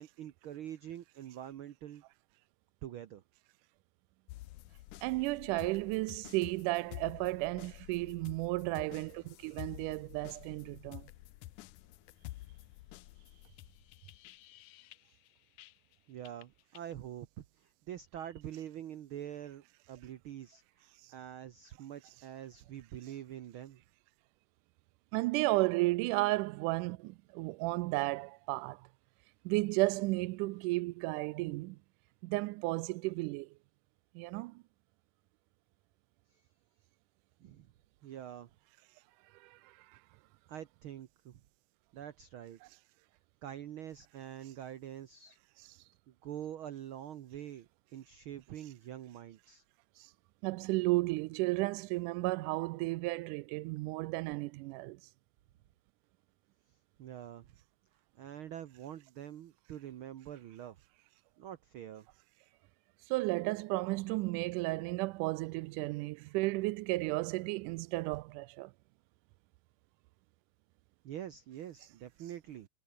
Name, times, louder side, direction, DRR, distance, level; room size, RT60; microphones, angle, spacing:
voice 1, 0.0-2.0 2.8-3.2 16.1-23.8 36.3-36.4 37.4-37.7 38.0-38.5 40.5-41.4 41.9-42.6 43.4-45.4 46.1-49.6 57.0-57.5 58.2-60.8 61.4-62.1 71.0-72.7, right 11 dB, 75° right, 1.2 m, -45 dB
sound 1, 4.3-16.0 16.3-16.9, left 17 dB, 85° left, 2.2 m, -51 dB
voice 2, 5.0-11.1 25.1-28.9 29.5-31.8 32.2-33.5 34.2-34.6 39.3-40.0 50.0-50.1 50.4-55.0 63.1-68.7, right 21 dB, 90° right, 2.1 m, -33 dB
omnidirectional pair, 3.6 m